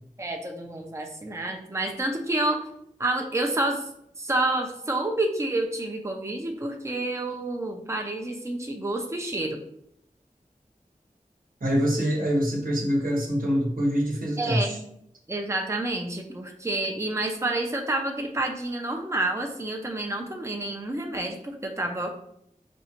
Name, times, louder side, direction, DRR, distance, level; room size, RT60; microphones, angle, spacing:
voice 1, 0.2-2.7 3.0-3.9 4.2-9.6 14.4-14.8 15.3-22.1, right 2 dB, 20° right, 2 dB, 0.6 m, -29 dB
voice 2, 11.6-14.7, equal, 90° right, -3 dB, 1.1 m, -25 dB
5.2 x 2.4 x 2.9 m, 0.73 s
wide cardioid pair, 45°, 14 cm